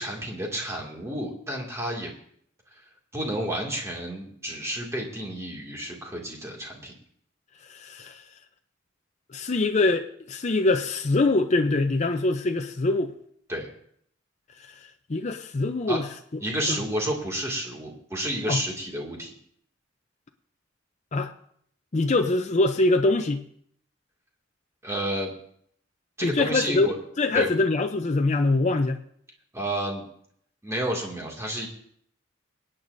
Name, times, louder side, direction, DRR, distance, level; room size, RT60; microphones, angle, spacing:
voice 1, 0.0-2.1 2.7-2.8 3.1-6.9 13.5-13.7 15.9-16.0 16.4-19.3 24.8-25.3 26.2-27.0 27.3-27.5 29.5-30.0 30.6-31.7, right 1 dB, 15° right, -1 dB, 2.2 m, -30 dB
voice 2, 7.7-8.2 9.3-13.1 15.1-16.1 16.7-16.8 18.5-18.6 21.1-21.3 21.9-23.4 26.2-29.0, left 2 dB, 35° left, 5 dB, 0.5 m, -24 dB
25.0 x 8.8 x 2.6 m, 0.66 s
head